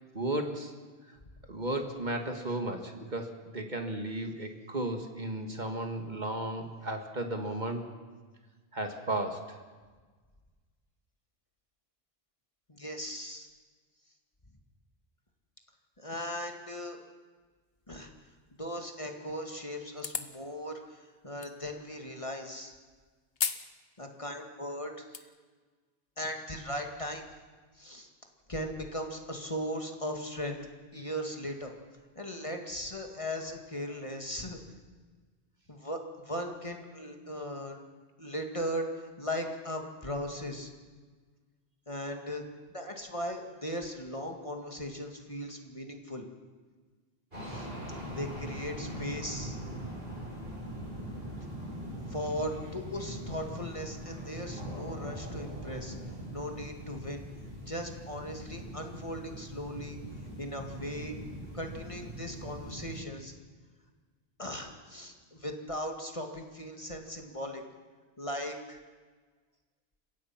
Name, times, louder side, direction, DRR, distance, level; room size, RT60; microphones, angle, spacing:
voice 1, 0.1-0.7 1.5-7.8 8.7-9.6, right 1 dB, 45° right, 4 dB, 2.0 m, -34 dB
voice 2, 12.7-13.5 16.0-17.0 17.9-18.1 18.6-22.8 24.0-25.3 26.2-27.2 27.8-28.1 28.5-30.6 30.9-31.7 32.2-34.6 35.7-37.8 38.2-40.7 41.9-42.4 42.7-46.3 47.5-47.7 48.2-49.6 52.1-56.0 56.3-57.2 57.7-60.0 60.4-61.2 61.5-63.3 64.4-67.6 68.2-68.8, equal, 30° left, 3 dB, 2.2 m, -38 dB
sound 1, 20.0-20.4 21.4-21.5 23.4-23.7 24.1-24.2 24.8-25.2, left 6 dB, 70° left, 1.3 m, -33 dB
sound 2, 47.3-63.0, right 1 dB, 70° right, 6.6 m, -41 dB
30.0 x 16.5 x 5.9 m, 1.4 s
omnidirectional pair, 1.0 m